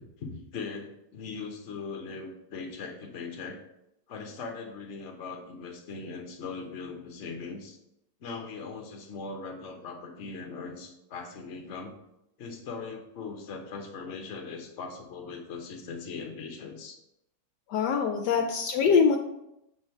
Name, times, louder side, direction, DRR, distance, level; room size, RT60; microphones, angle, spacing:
voice 1, 0.0-3.6 4.1-7.8 8.2-11.9 12.4-17.0 18.3-18.5, left 4 dB, 50° left, 3 dB, 1.1 m, -40 dB
voice 2, 17.7-19.2, left 6 dB, 75° left, 4 dB, 1.1 m, -23 dB
7.3 x 3.5 x 4.5 m, 0.83 s
omnidirectional pair, 1.9 m